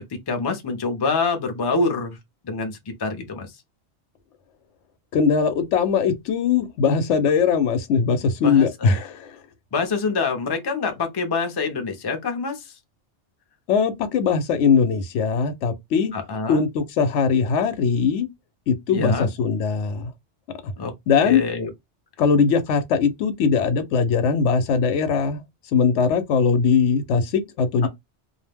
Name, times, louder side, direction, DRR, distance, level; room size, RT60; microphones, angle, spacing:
voice 1, 0.3-2.2 2.4-3.5 8.4-9.0 9.7-12.7 16.1-16.6 18.9-19.3 20.8-20.9 21.2-21.7 27.8-27.9, left 4 dB, 30° left, 0.4 m, -26 dB
voice 2, 5.1-9.4 13.7-16.1 16.5-18.3 18.7-20.1 20.6-20.7 21.1-21.4 22.2-25.4 25.7-27.9, left 6 dB, 80° left, 0.9 m, -20 dB
2.4 x 2.1 x 3.3 m
omnidirectional pair, 1.2 m